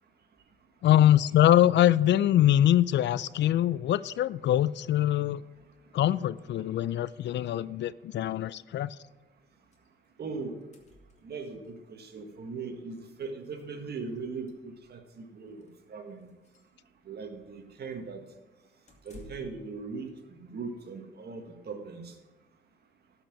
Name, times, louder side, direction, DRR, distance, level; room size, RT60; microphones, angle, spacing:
voice 1, 0.8-5.4 5.9-9.0, left 12 dB, 65° left, 18 dB, 0.4 m, -23 dB
voice 2, 5.6-6.0 6.8-7.4 10.2-10.6 11.2-16.3 17.0-18.3 19.0-22.2, right 4 dB, 55° right, 5 dB, 1.7 m, -40 dB
sound 1, 9.7-9.9 10.2-10.3 10.5-11.7 13.0-13.1 13.4-13.6 14.1-15.0 15.5-15.7 16.2-16.7 18.9-19.7, left 1 dB, 35° left, 2.4 m, -55 dB
12.0 x 5.9 x 7.5 m, 1.1 s
cardioid pair, 90°, 20 cm